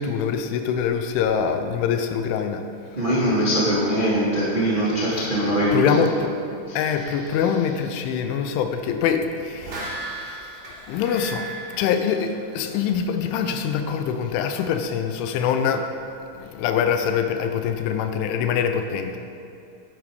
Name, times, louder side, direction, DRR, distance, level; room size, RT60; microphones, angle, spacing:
voice 1, 0.0-2.6 5.1-5.3 5.7-6.4 6.8-11.5 11.7-15.9 16.3-19.2, left 7 dB, 85° left, 7 dB, 3.3 m, -24 dB
voice 2, 2.9-6.1 6.7-6.8, right 1 dB, 40° right, -7 dB, 0.6 m, -22 dB
sound 1, 9.4-12.9 13.2-13.3, right 2 dB, 60° right, 4.4 m, -36 dB
11.0 x 10.5 x 5.3 m, 2.6 s
omnidirectional pair, 5.4 m